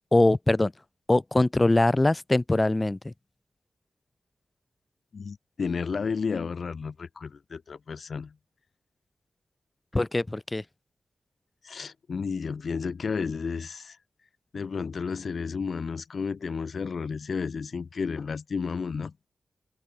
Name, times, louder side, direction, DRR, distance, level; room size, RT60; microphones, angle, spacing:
voice 1, 0.1-0.7 1.1-3.1 9.9-10.6, left 2 dB, 20° left, 0.7 m, -22 dB
voice 2, 5.1-8.3 11.6-14.0 14.5-19.1, left 5 dB, 60° left, 1.4 m, -32 dB
wide cardioid pair, 90°, 0 cm